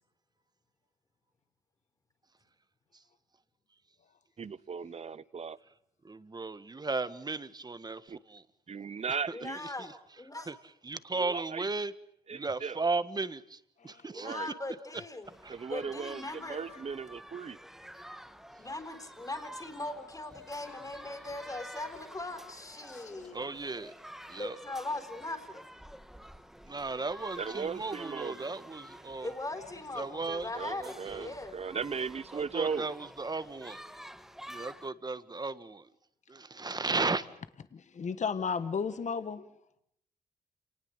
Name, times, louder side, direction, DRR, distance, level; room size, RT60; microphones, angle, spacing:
voice 1, 4.4-5.6 8.1-8.2 8.7-9.6 11.1-11.7 12.3-12.8 14.1-14.5 15.5-17.6 27.4-28.5 30.5-32.9, right 6 dB, 40° right, 0.9 m, -37 dB
voice 2, 6.0-8.4 9.3-9.9 10.4-11.9 12.3-14.3 15.4-15.6 23.3-23.9 24.3-24.6 26.6-29.3 29.9-30.5 30.8-31.3 32.4-33.8 34.5-35.9 36.3-37.3, right 3 dB, 25° right, 1.5 m, -36 dB
voice 3, 9.3-9.9 10.2-10.5 14.1-15.3 15.7-16.6 18.6-23.4 24.4-25.6 29.2-31.5, left 2 dB, 20° left, 4.2 m, -40 dB
sound 1, 15.2-34.9, equal, ahead, 1.6 m, -50 dB
voice 4, 16.5-16.8 20.6-20.8 22.9-23.4 37.7-39.5, left 6 dB, 50° left, 1.4 m, -35 dB
28.0 x 19.5 x 8.0 m
cardioid pair, 80°, 16 cm